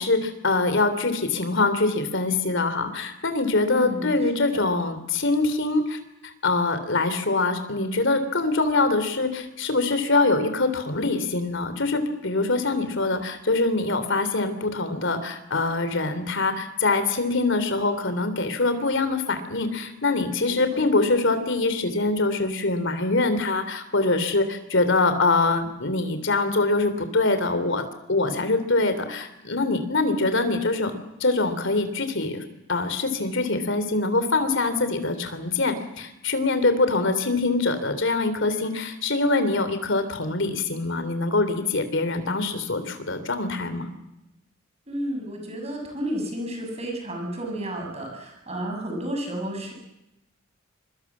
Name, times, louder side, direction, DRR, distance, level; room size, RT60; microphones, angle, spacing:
voice 1, 0.0-32.4 32.7-43.9, left 3 dB, 60° left, 10 dB, 3.4 m, -24 dB
voice 2, 3.7-4.1 4.5-4.7 20.4-20.9 30.1-30.4 44.9-49.7, equal, 30° right, 2 dB, 7.4 m, -32 dB
25.5 x 23.5 x 7.4 m, 0.90 s
head